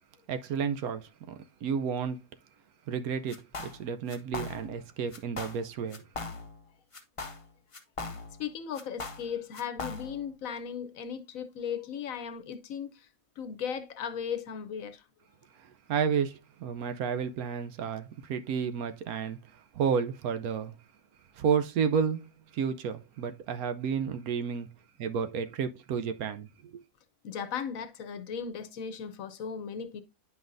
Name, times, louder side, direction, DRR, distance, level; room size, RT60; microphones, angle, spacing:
voice 1, 0.3-1.3 1.6-2.2 2.9-6.0 15.9-19.4 19.7-20.8 21.4-22.2 22.5-24.7 25.0-26.8, right 6 dB, 75° right, 1.1 m, -31 dB
sound 1, 3.3-3.8 4.1-4.8 5.1-5.6 5.9-6.6 6.9-8.5 8.7-10.3, left 3 dB, 30° left, 0.7 m, -39 dB
voice 2, 8.4-13.1 13.4-15.0 27.2-30.0, left 7 dB, 65° left, 1.1 m, -37 dB
9.4 x 5.6 x 2.5 m
omnidirectional pair, 1.6 m